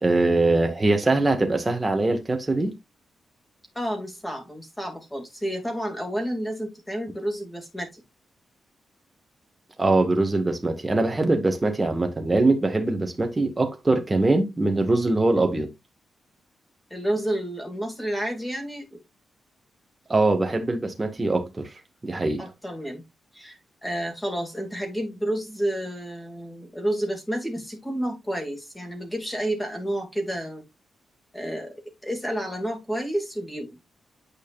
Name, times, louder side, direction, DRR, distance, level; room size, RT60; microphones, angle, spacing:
voice 1, 0.0-2.7 9.8-15.7 20.1-21.7 22.0-22.4, right 2 dB, 20° right, 1.8 m, -22 dB
voice 2, 3.7-8.0 16.9-19.0 22.4-23.0 23.3-30.6 31.3-33.8, right 1 dB, 10° left, 2.6 m, -30 dB
9.0 x 5.2 x 2.6 m
cardioid pair, 95°, 0 cm